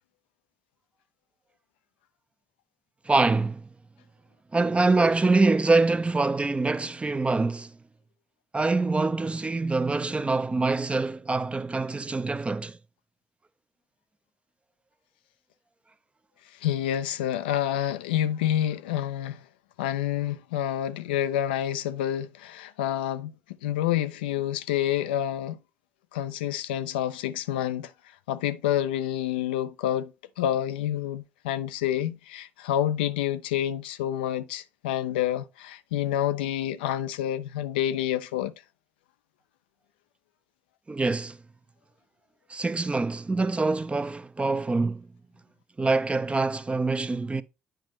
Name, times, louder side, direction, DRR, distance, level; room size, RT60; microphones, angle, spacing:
voice 1, 3.1-3.7 4.5-7.7 8.5-12.8 40.9-41.4 42.5-45.1 45.8-47.4, right 3 dB, 25° right, 0.5 m, -25 dB
voice 2, 16.6-19.4 19.8-23.3 23.6-25.6 26.1-27.9 28.3-30.1 30.4-38.5, left 11 dB, 85° left, 0.3 m, -28 dB
8.9 x 4.9 x 3.1 m
hypercardioid pair, 50°, 5 cm